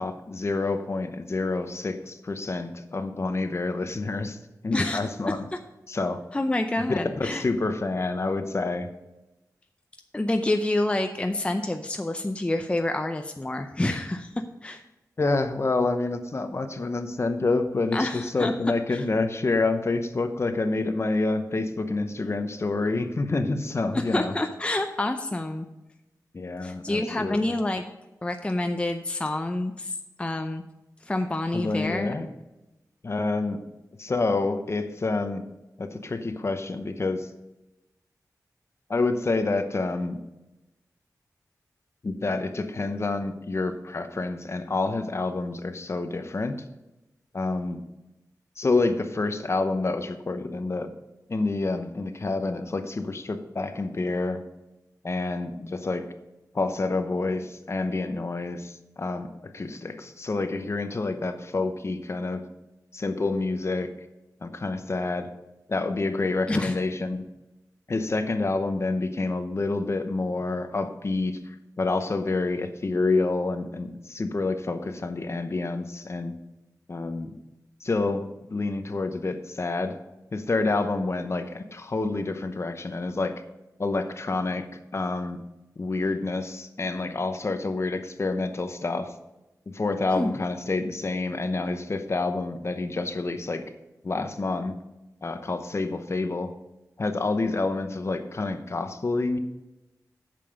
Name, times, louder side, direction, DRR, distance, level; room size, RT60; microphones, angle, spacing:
voice 1, 0.0-5.5 5.9-6.2 6.8-6.9 7.2-8.9 15.2-24.3 26.3-27.5 31.5-32.3 33.0-33.6 34.0-35.4 35.8-37.3 38.9-40.2 42.0-46.5 47.3-47.8 48.6-50.9 51.3-54.4 55.0-56.0 56.5-59.3 59.5-62.4 62.9-63.9 64.4-65.3 65.7-67.2 67.9-76.3 76.9-77.3 77.8-80.0 80.3-83.3 83.8-84.7 84.9-85.4 85.8-89.1 89.7-93.6 94.0-94.8 95.2-96.5 97.0-99.4, left 3 dB, 45° left, 8 dB, 0.8 m, -28 dB
voice 2, 6.3-7.4 10.1-14.8 17.9-18.5 18.9-19.0 23.9-25.7 26.6-27.8 28.2-30.6 31.0-32.1 66.5-66.8 90.1-90.3, left 2 dB, 15° left, 6 dB, 0.5 m, -28 dB
9.0 x 6.9 x 5.2 m, 1.0 s
wide cardioid pair, 110°, 7 cm